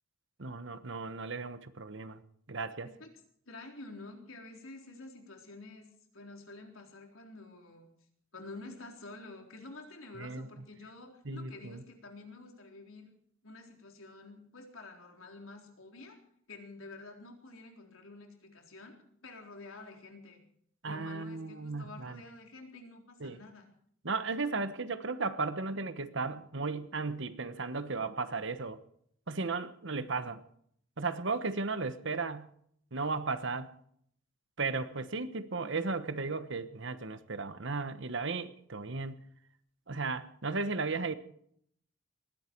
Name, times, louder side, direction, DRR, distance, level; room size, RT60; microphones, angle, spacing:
voice 1, 0.4-2.2 2.5-2.9 10.2-10.5 11.2-11.8 20.8-22.1 23.2-23.4 24.0-28.8 29.3-30.4 31.0-32.5 32.9-33.7 34.6-39.2 39.9-41.1, right 4 dB, 60° right, 12 dB, 1.2 m, -35 dB
voice 2, 3.5-7.9 8.3-13.1 13.4-16.2 16.5-19.0 19.2-20.4 20.8-23.7, left 2 dB, 85° left, 2 dB, 3.9 m, -49 dB
20.0 x 16.0 x 4.6 m, 0.67 s
head